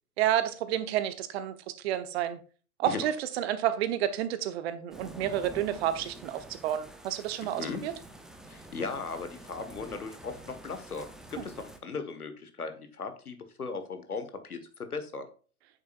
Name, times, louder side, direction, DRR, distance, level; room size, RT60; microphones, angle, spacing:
voice 1, 0.2-1.5 1.8-2.4 2.8-7.9, right 11 dB, 45° right, 11 dB, 1.1 m, -30 dB
sound 1, 4.9-11.8, right 1 dB, ahead, 0.6 m, -48 dB
voice 2, 7.4-7.8 8.5-14.6 14.9-15.3, left 4 dB, 90° left, 9 dB, 1.6 m, -37 dB
8.7 x 6.9 x 2.5 m, 0.38 s
figure-of-eight pair, 110°, 43 cm